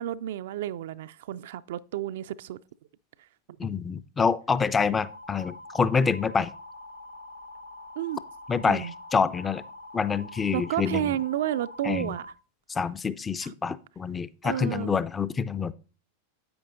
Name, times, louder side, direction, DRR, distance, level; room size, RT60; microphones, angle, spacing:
voice 1, 0.0-2.6 8.0-8.2 8.7-8.9 10.5-12.2 13.4-13.5 14.4-14.9, right 12 dB, 55° right, 0.3 m, -31 dB
voice 2, 3.6-6.5 8.5-9.6 9.9-11.2 11.8-12.2 12.7-15.7, left 5 dB, 15° left, 0.4 m, -27 dB
sound 1, 5.0-12.3, left 2 dB, 80° left, 0.7 m, -45 dB
9.5 x 8.9 x 2.5 m
figure-of-eight pair, 90°, 0 cm